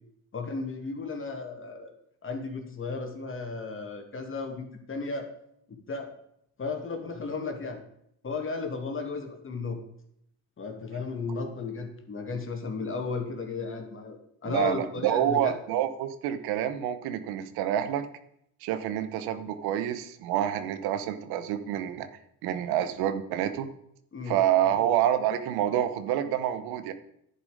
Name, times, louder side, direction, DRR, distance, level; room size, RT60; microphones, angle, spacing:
voice 1, 0.3-1.9 2.2-5.3 5.7-6.1 6.6-7.8 8.2-9.8 10.6-14.2 14.4-15.5 24.1-24.4, left 4 dB, 35° left, 4 dB, 2.6 m, -34 dB
voice 2, 14.4-18.0 18.6-22.1 22.4-23.7 24.3-26.9, right 11 dB, 85° right, 10 dB, 1.2 m, -27 dB
10.5 x 9.8 x 5.1 m, 0.72 s
cardioid pair, 100°, 37 cm